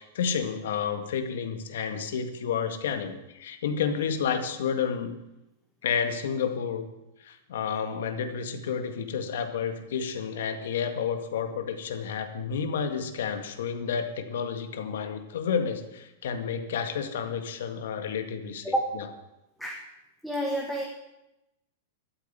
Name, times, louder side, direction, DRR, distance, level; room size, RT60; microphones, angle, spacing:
voice 1, 0.0-5.2 5.8-6.9 7.2-18.7, left 7 dB, 75° left, 7 dB, 2.0 m, -30 dB
voice 2, 18.6-19.0 19.6-19.9 20.2-20.8, right 1 dB, ahead, -1 dB, 1.4 m, -29 dB
13.0 x 8.6 x 9.3 m, 0.90 s
supercardioid pair, 165°, 0 cm